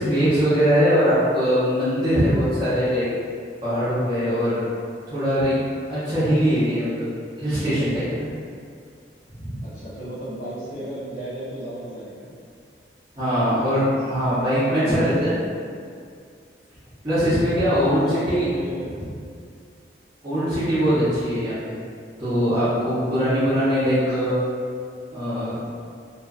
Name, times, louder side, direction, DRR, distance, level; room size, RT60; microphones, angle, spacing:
voice 1, 0.0-3.1 3.6-4.6 5.1-5.5 5.9-7.0 7.4-8.2 9.4-9.5 13.2-15.3 17.0-18.0 18.3-18.5 19.0-19.1 20.2-21.8 22.2-24.3 25.1-25.5, equal, 20° right, -15 dB, 0.6 m, -21 dB
voice 2, 9.6-12.3 17.8-19.0 24.1-24.2, right 1 dB, 75° left, -12 dB, 0.9 m, -35 dB
2.6 x 2.1 x 2.4 m, 2.2 s
head